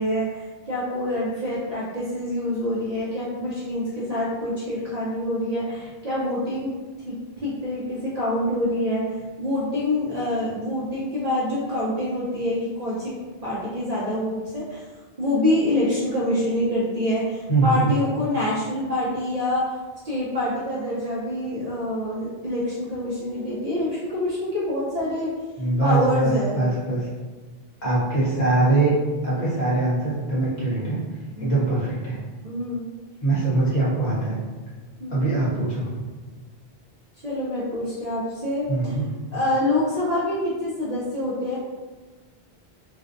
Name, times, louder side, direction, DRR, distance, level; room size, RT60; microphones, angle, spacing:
voice 1, 0.0-6.7 7.1-7.2 7.4-9.1 9.4-13.1 13.4-14.8 15.2-19.8 20.0-25.3 25.8-26.6 31.4-31.5 32.4-32.9 35.0-35.2 37.2-38.9 39.3-41.6, left 1 dB, 50° right, -8 dB, 0.5 m, -26 dB
voice 2, 17.5-17.9 25.6-27.1 27.8-28.9 29.2-31.0 31.4-32.2 33.2-34.4 35.1-36.1 38.7-39.1, right 2 dB, 45° left, -8 dB, 0.9 m, -22 dB
2.5 x 2.2 x 2.5 m, 1.3 s
omnidirectional pair, 1.1 m